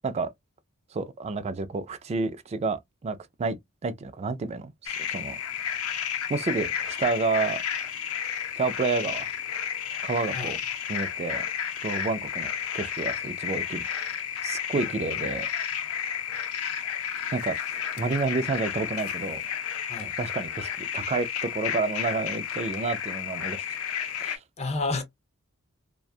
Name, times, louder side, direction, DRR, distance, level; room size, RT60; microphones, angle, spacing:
voice 1, 0.9-5.4 6.3-7.6 8.6-9.3 10.0-10.6 10.9-11.5 11.8-15.5 17.3-17.6 18.0-19.4 20.0-23.6 24.2-24.4, right 4 dB, 30° right, 0.3 m, -30 dB
sound 1, 4.9-24.4, left 8 dB, 85° left, 0.6 m, -32 dB
voice 2, 14.7-15.2 19.9-20.1 24.6-25.0, left 3 dB, 30° left, 0.6 m, -32 dB
2.6 x 2.2 x 2.3 m
head